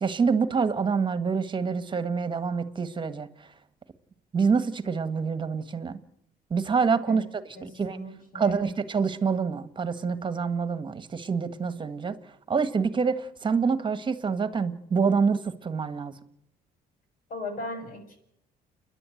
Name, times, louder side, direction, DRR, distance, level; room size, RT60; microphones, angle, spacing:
voice 1, 0.0-3.5 4.3-6.0 6.5-8.0 8.3-12.2 12.5-16.1, right 5 dB, 30° right, 1.7 m, -26 dB
voice 2, 7.5-8.7 17.3-18.2, left 2 dB, 55° left, 6.7 m, -38 dB
30.0 x 11.0 x 8.0 m
cardioid pair, 110°, 17 cm